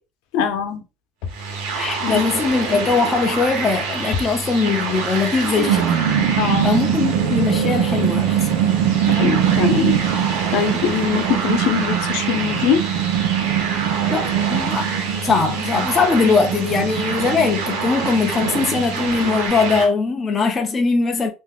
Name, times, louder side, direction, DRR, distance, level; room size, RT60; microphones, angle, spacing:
voice 1, 0.3-0.8 2.0-2.2 6.3-6.7 9.1-10.0 10.3-12.9, left 7 dB, 65° left, 0.6 m, -22 dB
sound 1, 1.3-19.9, right 4 dB, 90° right, 0.9 m, -27 dB
voice 2, 1.7-6.0 6.6-8.5 14.1-14.9 15.2-21.3, left 4 dB, 15° left, 0.3 m, -20 dB
sound 2, 5.2-19.5, right 10 dB, 70° right, 0.4 m, -23 dB
2.5 x 2.2 x 3.5 m
cardioid pair, 180°, 0 cm